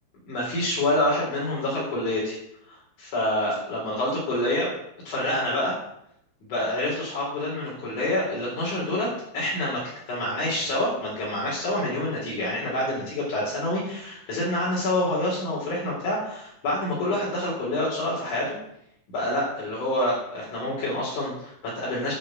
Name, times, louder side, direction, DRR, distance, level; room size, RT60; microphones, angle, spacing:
voice 1, 0.3-2.4 2.7-4.7 5.1-5.7 6.5-9.1 9.3-9.8 10.1-18.6 19.1-22.1, left 1 dB, 90° left, -7 dB, 5.7 m, -27 dB
10.5 x 9.9 x 8.0 m, 0.76 s
omnidirectional pair, 3.4 m